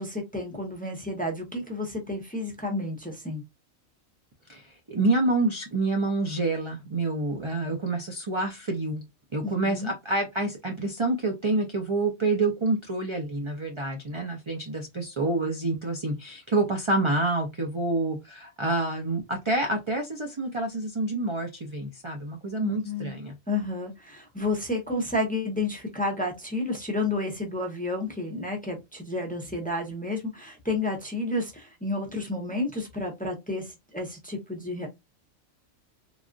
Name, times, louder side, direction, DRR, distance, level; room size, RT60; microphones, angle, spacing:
voice 1, 0.0-3.4 9.4-9.9 22.6-23.2 23.5-34.9, left 2 dB, 10° left, 0.6 m, -31 dB
voice 2, 4.5-9.0 9.3-23.3, right 2 dB, 45° right, 0.4 m, -28 dB
3.4 x 2.3 x 2.5 m
omnidirectional pair, 1.4 m